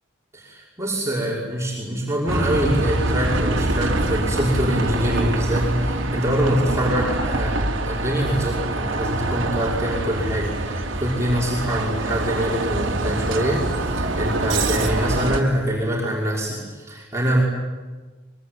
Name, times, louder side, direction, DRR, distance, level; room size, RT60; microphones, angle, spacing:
voice 1, 0.3-17.4, equal, 15° right, -5 dB, 5.9 m, -25 dB
Bus, 2.3-15.4, right 2 dB, 85° right, 3.1 m, -24 dB
25.5 x 24.5 x 9.6 m, 1.3 s
head